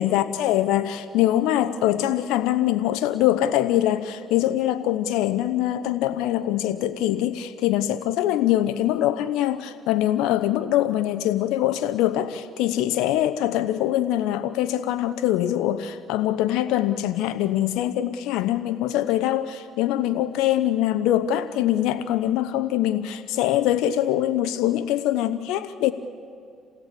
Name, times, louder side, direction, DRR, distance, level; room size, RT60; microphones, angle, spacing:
voice 1, 0.0-25.9, left 12 dB, 85° left, 11 dB, 0.7 m, -23 dB
28.0 x 17.0 x 8.4 m, 2.4 s
supercardioid pair, 75°, 0 cm